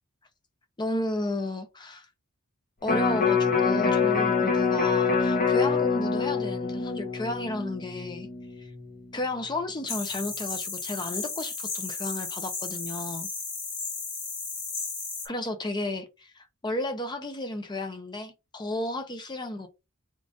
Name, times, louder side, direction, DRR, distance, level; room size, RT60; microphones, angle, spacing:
voice 1, 0.8-2.1 2.8-8.3 8.6-8.7 9.1-13.3 15.2-19.7, left 2 dB, 20° left, 0.5 m, -33 dB
Electric guitar, 2.9-9.1 9.5-9.6, left 5 dB, 40° left, 0.9 m, -25 dB
sound 1, 9.9-15.3, left 4 dB, 55° left, 2.1 m, -34 dB
3.7 x 2.5 x 3.7 m
head